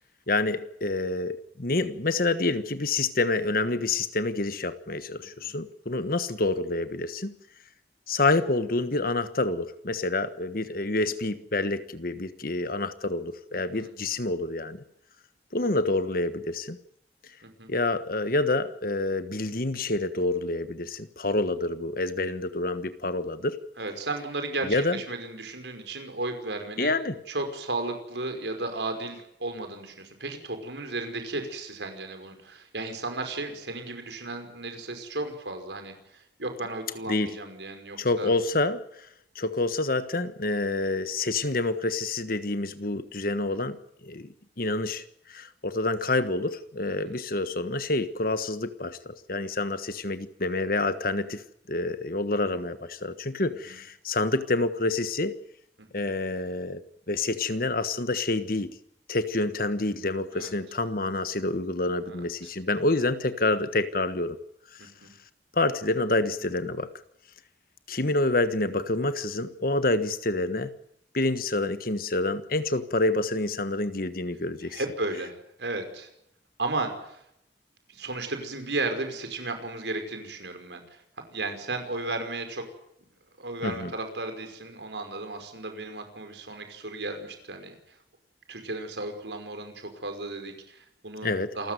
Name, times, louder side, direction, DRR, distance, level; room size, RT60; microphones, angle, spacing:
voice 1, 0.3-7.3 8.1-14.8 15.5-16.8 17.7-23.6 24.6-25.0 26.8-27.2 37.1-37.3 38.0-39.1 39.3-43.8 44.0-55.4 55.9-56.8 57.1-58.7 59.1-64.4 64.7-64.9 65.5-66.9 67.9-70.7 71.1-74.8 83.6-83.9 91.2-91.6, left 2 dB, 55° left, 11 dB, 1.4 m, -28 dB
voice 2, 5.2-5.5 13.5-13.9 17.4-17.7 23.8-26.9 27.3-38.3 47.1-47.2 53.7-53.8 55.8-56.1 60.3-60.5 62.1-62.2 64.8-65.1 74.7-76.1 76.6-77.2 77.9-82.6 83.4-87.8 88.5-91.7, right 2 dB, 85° right, 6 dB, 5.5 m, -34 dB
28.0 x 15.0 x 9.3 m, 0.77 s
head